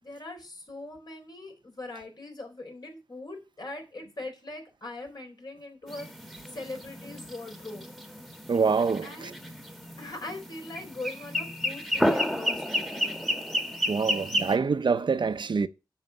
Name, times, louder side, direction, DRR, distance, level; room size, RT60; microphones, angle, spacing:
voice 1, 0.0-6.1 6.5-7.8 9.0-9.3 10.0-13.1, left 2 dB, 60° left, 4.3 m, -41 dB
sound 1, 5.9-14.6, equal, ahead, 1.4 m, -31 dB
voice 2, 8.5-9.3 13.9-15.7, right 5 dB, 70° right, 0.7 m, -26 dB
7.4 x 6.6 x 7.8 m
wide cardioid pair, 95°, 8 cm